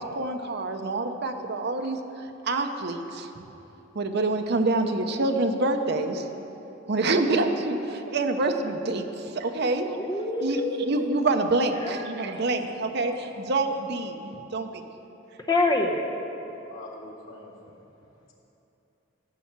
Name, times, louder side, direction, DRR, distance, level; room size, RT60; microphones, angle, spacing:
voice 1, 0.0-2.0 2.4-3.3 3.9-6.3 6.9-9.9 10.4-14.8, right 2 dB, 55° right, 5 dB, 0.7 m, -26 dB
voice 2, 9.9-10.8 11.8-12.4 15.5-16.0, left 2 dB, 20° left, 2 dB, 1.0 m, -26 dB
voice 3, 12.3-12.8 13.1-13.3 16.7-17.8, left 2 dB, 90° left, -5 dB, 2.0 m, -45 dB
13.0 x 5.6 x 7.3 m, 3.0 s
head